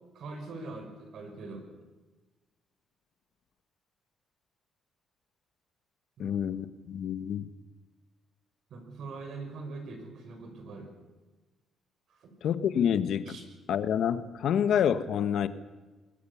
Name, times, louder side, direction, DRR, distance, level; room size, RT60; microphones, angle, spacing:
voice 1, 0.1-1.6 6.2-6.4 8.7-10.9 12.1-12.3 13.3-13.4, right 3 dB, 70° right, 5 dB, 6.0 m, -42 dB
voice 2, 6.2-7.5 12.4-13.4 13.7-15.5, left 8 dB, 70° left, 12 dB, 1.3 m, -28 dB
22.5 x 21.0 x 7.2 m, 1.2 s
cardioid pair, 90°, 0 cm